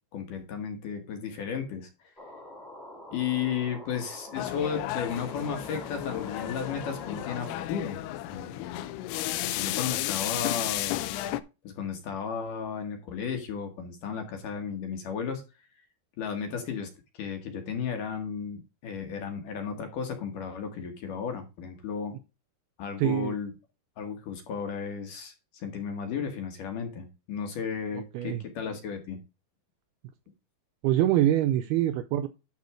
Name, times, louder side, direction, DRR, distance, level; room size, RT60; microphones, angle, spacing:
voice 1, 0.1-1.9 3.1-8.8 9.4-11.0 11.6-15.4 16.2-16.9 17.1-22.1 22.8-23.5 24.0-29.2, left 7 dB, 60° left, 5 dB, 2.5 m, -34 dB
sound 1, 2.2-7.7, left 1 dB, ahead, 1.7 m, -45 dB
sound 2, 4.3-11.4, left 14 dB, 80° left, 2.4 m, -33 dB
voice 2, 23.0-23.4 27.9-28.4 30.8-32.3, right 12 dB, 85° right, 9 dB, 2.3 m, -25 dB
12.0 x 4.1 x 4.7 m, 0.28 s
omnidirectional pair, 4.9 m